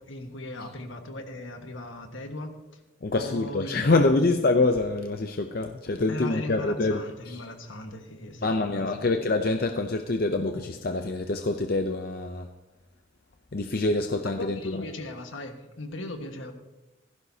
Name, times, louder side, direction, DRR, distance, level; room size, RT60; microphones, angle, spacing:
voice 1, 0.0-2.8 3.2-4.3 6.1-9.1 14.2-16.5, left 1 dB, 75° left, 5 dB, 1.6 m, -38 dB
voice 2, 3.0-7.4 8.4-12.5 13.5-14.8, left 2 dB, 50° left, 5 dB, 0.6 m, -26 dB
17.5 x 15.0 x 2.8 m, 1.0 s
head